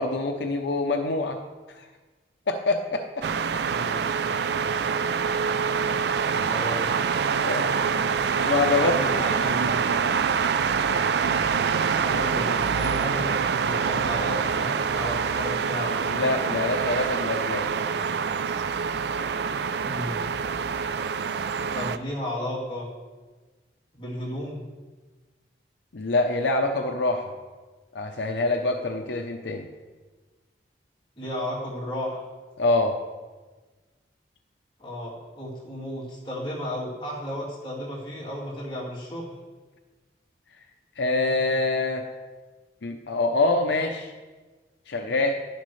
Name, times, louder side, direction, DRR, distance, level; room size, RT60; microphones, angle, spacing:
voice 1, 0.0-1.4 1.7-1.9 2.5-3.2 5.0-5.2 7.4-7.7 8.4-9.2 16.1-17.7 25.9-27.3 27.9-29.7 32.6-33.0 41.0-42.0 42.8-44.1 44.9-45.4, left 2 dB, 75° left, 5 dB, 0.7 m, -25 dB
sound 1, 3.2-22.0, right 6 dB, 65° right, 0.4 m, -25 dB
voice 2, 3.7-4.1 6.5-6.8 8.7-9.8 12.0-13.3 13.6-16.3 19.8-20.2 21.7-22.9 24.0-24.6 31.2-32.2 34.8-39.3, equal, 25° left, -7 dB, 2.9 m, -33 dB
11.0 x 10.5 x 3.2 m, 1.3 s
head